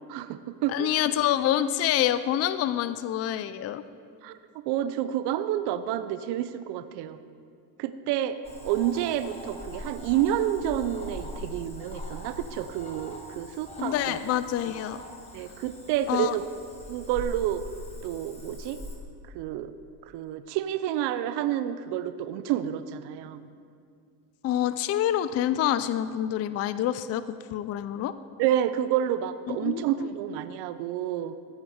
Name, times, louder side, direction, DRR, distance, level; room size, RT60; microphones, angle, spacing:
voice 1, 0.1-0.9 4.2-4.4 4.7-7.2 7.8-8.4 8.6-14.2 15.3-16.5 16.9-17.6 18.0-18.8 19.3-19.7 20.0-23.4 28.4-31.4, right 11 dB, 70° right, 12 dB, 0.6 m, -29 dB
voice 2, 0.7-3.8 13.8-15.0 16.1-16.3 24.4-28.1 29.5-30.1, left 11 dB, 40° left, 13 dB, 0.4 m, -27 dB
Cricket / Frog, 8.4-19.0, left 1 dB, 15° left, 1.8 m, -42 dB
14.0 x 7.9 x 5.0 m, 2.3 s
supercardioid pair, 95°, 43 cm